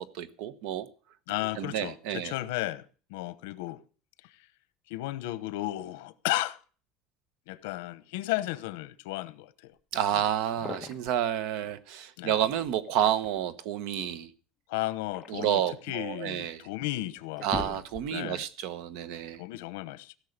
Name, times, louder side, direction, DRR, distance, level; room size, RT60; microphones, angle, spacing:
voice 1, 0.1-0.9 1.6-2.3 9.9-14.3 15.3-16.6 17.4-19.4, right 10 dB, 60° right, 1.0 m, -30 dB
voice 2, 1.3-2.8 3.1-3.8 4.9-6.6 7.5-9.7 12.2-12.4 14.7-15.6 15.9-17.8 18.1-18.4 19.4-20.2, left 17 dB, 85° left, 0.9 m, -34 dB
sound 1, 10.4-11.2 12.6-13.5 14.7-16.1 16.7-16.8 17.2-18.3, left 4 dB, 15° left, 1.2 m, -41 dB
16.5 x 6.5 x 6.6 m
cardioid pair, 175°, 0 cm